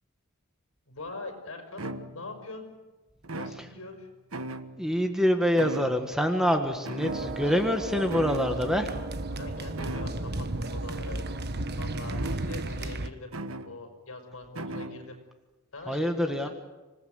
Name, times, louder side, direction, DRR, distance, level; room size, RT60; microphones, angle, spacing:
voice 1, 0.9-2.7 3.3-4.1 7.1-7.6 9.4-11.4 11.8-13.3 13.6-15.2 15.7-16.5, left 3 dB, 70° left, 5 dB, 6.0 m, -43 dB
sound 1, 1.1-1.2 1.8-2.5 3.2-4.0 4.3-5.0 5.6-6.3 6.9-7.7 8.1-8.6 9.8-10.4 12.1-12.8 13.3-13.8 14.6-15.1, right 2 dB, 70° right, 1.4 m, -38 dB
voice 2, 4.8-8.9 15.9-16.5, equal, 5° right, 5 dB, 1.6 m, -26 dB
sound 2, 7.1-13.1, right 2 dB, 50° right, 1.3 m, -34 dB
26.5 x 18.5 x 8.0 m, 1.2 s
head